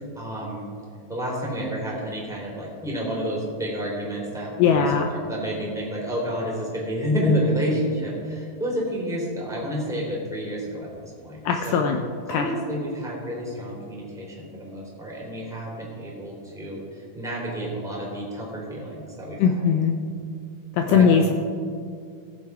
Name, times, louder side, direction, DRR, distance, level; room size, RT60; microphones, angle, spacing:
voice 1, 0.1-0.7 1.1-11.4 11.6-11.8 12.3-19.5 20.9-21.1, equal, ahead, -4 dB, 2.6 m, -29 dB
voice 2, 4.6-5.1 11.5-12.0 12.3-12.5 19.4-19.9 20.7-21.3, left 6 dB, 85° left, 4 dB, 2.0 m, -19 dB
17.0 x 7.5 x 4.8 m, 2.3 s
omnidirectional pair, 4.5 m